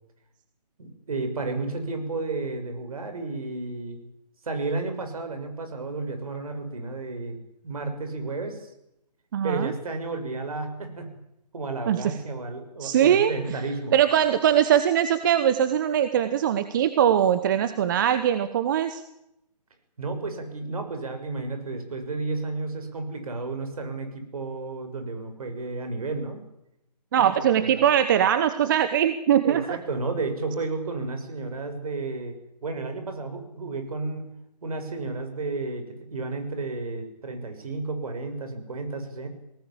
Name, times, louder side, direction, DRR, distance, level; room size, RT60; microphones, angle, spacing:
voice 1, 0.8-4.0 4.4-7.4 7.6-8.7 9.4-11.1 11.5-14.0 20.0-26.4 27.6-27.9 29.4-32.3 32.6-34.3 34.6-39.3, right 3 dB, 60° right, 7 dB, 6.4 m, -32 dB
voice 2, 9.3-9.7 11.9-12.1 12.8-13.3 13.9-19.0 27.1-29.8, right 9 dB, 30° right, 11 dB, 1.1 m, -21 dB
22.5 x 19.0 x 8.8 m, 0.84 s
figure-of-eight pair, 150°, 21 cm